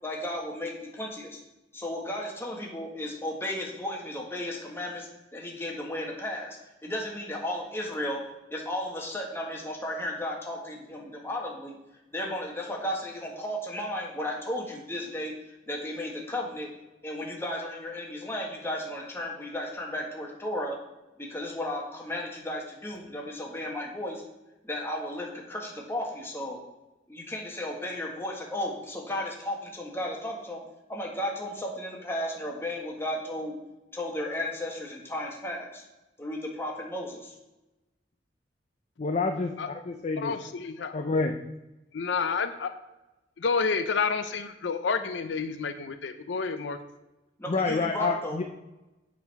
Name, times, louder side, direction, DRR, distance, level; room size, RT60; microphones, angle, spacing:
voice 1, 0.0-1.4 1.7-8.2 8.5-11.7 12.1-15.3 15.7-16.7 17.0-20.8 21.2-24.2 24.6-26.6 27.1-30.6 30.9-33.6 33.9-35.8 36.2-37.3 47.4-48.4, left 1 dB, 15° left, -1 dB, 1.5 m, -34 dB
voice 2, 39.0-40.3 40.9-41.3 47.5-48.4, left 3 dB, 40° left, 5 dB, 0.5 m, -28 dB
voice 3, 40.2-40.9 41.9-42.7 43.4-46.8, left 5 dB, 90° left, 9 dB, 0.6 m, -29 dB
8.3 x 4.1 x 5.3 m, 1.0 s
head